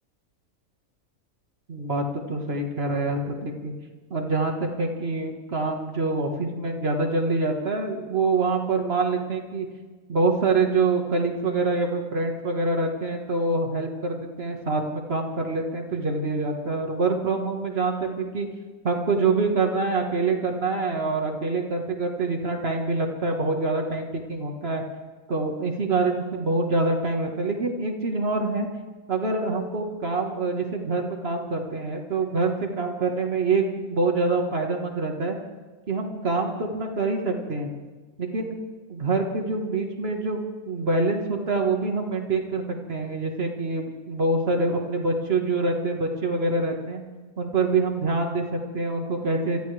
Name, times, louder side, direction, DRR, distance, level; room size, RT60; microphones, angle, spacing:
voice 1, 1.7-3.7 4.1-9.7 10.1-18.5 18.8-24.8 25.3-28.7 29.1-35.4 35.9-37.7 38.2-38.6 38.9-47.0 47.4-49.6, right 3 dB, 50° right, 3 dB, 1.8 m, -25 dB
28.5 x 13.5 x 3.4 m, 1.4 s
omnidirectional pair, 1.4 m